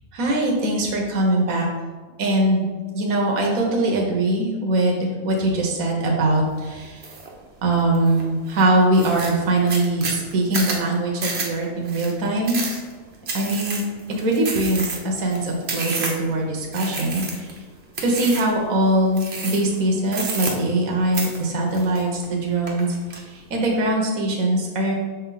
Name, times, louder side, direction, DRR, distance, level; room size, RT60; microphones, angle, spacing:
voice 1, 0.1-1.7 2.2-2.7 2.9-7.1 7.6-12.6 13.3-13.8 14.2-17.5 18.0-23.0 23.3-24.9, right 1 dB, 70° right, 0 dB, 1.4 m, -22 dB
sound 1, 7.0-7.3 7.7-8.2 8.6-8.7 8.9-16.3 16.7-17.6 17.9-18.6 19.1-19.8 20.1-20.9 21.1-22.3 22.7-23.2, right 3 dB, 50° right, 1.1 m, -30 dB
6.2 x 4.6 x 3.9 m, 1.4 s
omnidirectional pair, 1.5 m